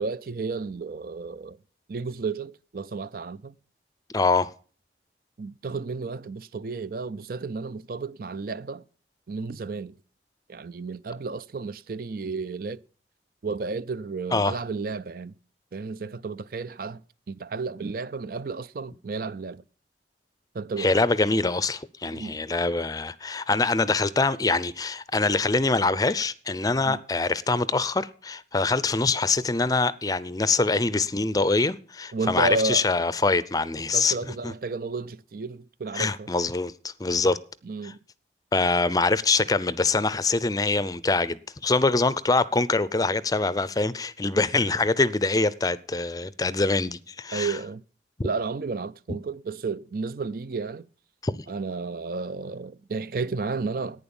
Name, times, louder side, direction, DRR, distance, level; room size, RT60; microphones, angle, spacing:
voice 1, 0.0-1.6 1.9-3.5 5.4-8.8 9.3-9.9 10.5-12.8 13.4-15.4 15.7-17.0 17.3-19.6 20.5-21.0 22.1-22.4 26.8-27.0 32.1-32.9 33.9-36.3 37.6-38.0 47.3-47.8 48.2-50.9 51.5-54.0, right 4 dB, 55° right, 0.5 m, -32 dB
voice 2, 4.1-4.5 14.3-14.6 20.8-34.2 34.4-34.5 35.9-37.4 37.8-37.9 38.5-47.5 51.2-51.4, left 3 dB, 20° left, 0.5 m, -24 dB
11.0 x 9.5 x 7.0 m
head